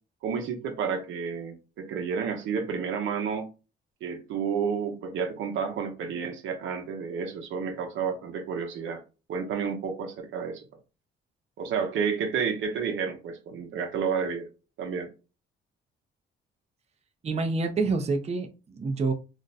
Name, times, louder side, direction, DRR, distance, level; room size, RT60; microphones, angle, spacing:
voice 1, 0.2-3.5 4.0-9.0 9.3-10.7 11.6-14.5 14.8-15.1, right 6 dB, 80° right, 0.8 m, -30 dB
voice 2, 17.2-19.1, right 3 dB, 35° right, 0.6 m, -27 dB
2.5 x 2.1 x 4.0 m
cardioid pair, 90°, 20 cm